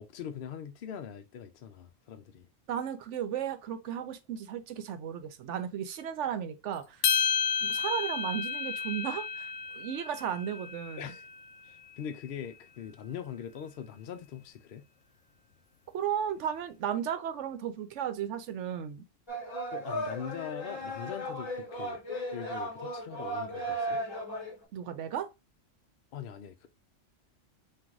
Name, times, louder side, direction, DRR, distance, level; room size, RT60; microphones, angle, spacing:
voice 1, 0.0-2.5 11.0-11.3 11.6-14.8 19.7-22.0 22.3-24.0 26.1-26.7, left 8 dB, 60° left, 0.6 m, -42 dB
voice 2, 2.7-7.0 7.6-11.1 15.9-19.0 24.7-25.3, right 9 dB, 70° right, 0.9 m, -35 dB
sound 1, 7.0-11.4, left 6 dB, 85° left, 1.0 m, -31 dB
sound 2, 19.3-24.6, equal, 20° left, 1.3 m, -36 dB
3.8 x 2.5 x 4.5 m
omnidirectional pair, 1.3 m